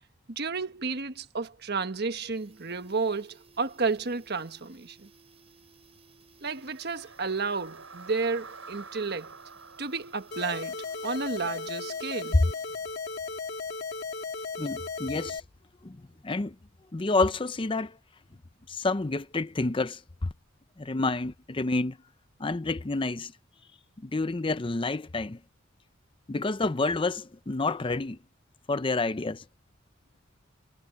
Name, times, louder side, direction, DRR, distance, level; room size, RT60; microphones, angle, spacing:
voice 1, 0.3-5.1 6.4-9.4 9.8-10.8 11.0-12.4, right 4 dB, 55° right, 1.4 m, -32 dB
sound 1, 1.4-1.5 1.8-1.9 2.1-13.0 13.3-13.4, right 4 dB, 30° right, 4.6 m, -59 dB
sound 2, 6.5-12.6, right 4 dB, 85° right, 5.0 m, -49 dB
sound 3, 10.3-15.4, left 4 dB, 55° left, 2.1 m, -36 dB
voice 2, 14.6-15.4 15.8-16.5 16.9-18.0 18.7-20.3 20.8-22.0 22.4-23.3 24.0-25.4 26.3-28.2 28.7-29.4, left 3 dB, 25° left, 0.6 m, -29 dB
head